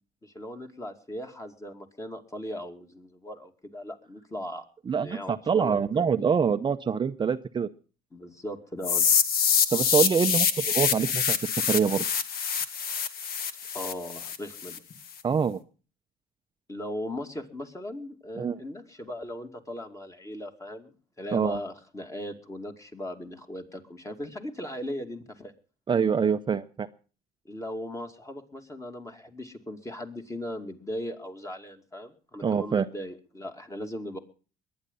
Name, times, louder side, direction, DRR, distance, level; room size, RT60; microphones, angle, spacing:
voice 1, 0.2-4.6 5.0-6.3 8.1-9.1 13.7-14.8 16.7-25.5 27.4-34.2, left 1 dB, 20° left, 5 dB, 2.4 m, -38 dB
voice 2, 4.9-7.7 9.7-11.4 11.7-12.0 15.2-15.6 18.4-18.6 21.3-21.6 25.9-26.9 32.4-32.9, right 6 dB, 30° right, 8 dB, 0.6 m, -25 dB
sound 1, 8.8-14.8, left 7 dB, 65° left, 1.7 m, -26 dB
21.5 x 9.7 x 5.5 m, 0.38 s
cardioid pair, 110°, 17 cm